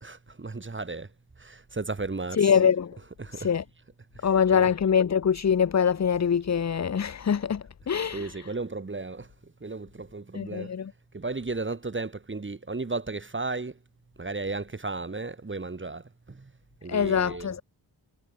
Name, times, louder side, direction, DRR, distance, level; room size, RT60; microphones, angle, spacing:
voice 1, 0.0-1.1 1.4-2.6 3.0-3.5 4.2-4.7 8.1-9.3 9.6-10.7 11.1-13.7 14.2-16.5 16.8-17.6, right 3 dB, 30° right, 1.6 m, -35 dB
voice 2, 2.3-3.0 3.3-3.6 4.2-8.5 10.3-10.9 16.9-17.6, left 7 dB, 40° left, 0.6 m, -24 dB
wide cardioid pair, 120°, 41 cm